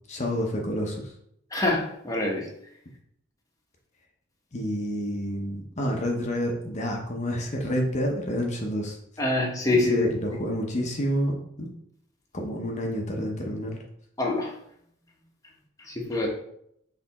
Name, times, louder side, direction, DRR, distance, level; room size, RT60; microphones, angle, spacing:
voice 1, 0.1-1.1 4.5-9.0 9.8-11.7 12.3-13.8, equal, 35° left, 0 dB, 0.9 m, -29 dB
voice 2, 1.5-2.5 9.2-10.1 14.2-14.5 15.9-16.3, left 2 dB, 20° left, -2 dB, 1.2 m, -25 dB
6.6 x 3.4 x 4.2 m, 0.72 s
head